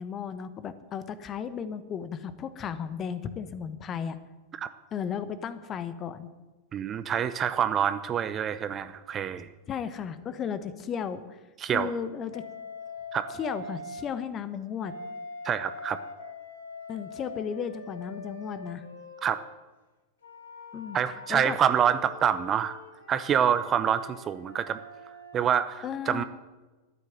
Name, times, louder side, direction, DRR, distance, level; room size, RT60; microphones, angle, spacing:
voice 1, 0.0-4.2 4.9-6.3 9.7-11.4 11.7-12.4 13.3-14.9 16.9-18.8 20.7-21.0 21.3-21.6 25.8-26.2, left 7 dB, 30° left, 13 dB, 1.2 m, -34 dB
voice 2, 6.7-9.5 11.6-11.9 13.1-13.3 15.4-16.0 19.2-19.4 20.9-22.8 23.1-24.8 25.3-26.2, right 8 dB, 25° right, 13 dB, 0.8 m, -26 dB
Wind instrument woodwind instrument, 12.3-14.1 14.8-19.5 20.2-25.5, left 2 dB, 65° left, 2.5 m, -43 dB
13.0 x 9.9 x 9.3 m, 1.2 s
figure-of-eight pair, 90°, 0 cm